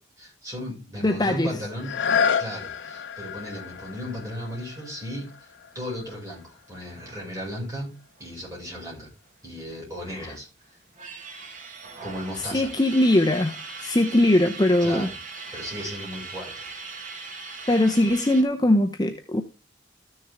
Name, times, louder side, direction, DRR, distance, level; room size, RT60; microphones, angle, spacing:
voice 1, 0.2-2.0 2.4-7.9 8.2-9.1 9.4-10.5 12.0-12.7 14.8-15.2 15.5-16.6, equal, 15° right, 5.5 m, -35 dB
voice 2, 1.0-1.5 10.1-10.3 12.4-15.1 17.7-19.4, left 1 dB, 20° left, 0.7 m, -21 dB
sound 1, 1.8-7.4 8.0-8.1, left 6 dB, 70° left, 0.8 m, -30 dB
sound 2, 3.5-8.6 8.9-9.0 9.2-10.2 10.6-18.4, right 4 dB, 40° right, 1.7 m, -41 dB
13.5 x 6.6 x 3.5 m
head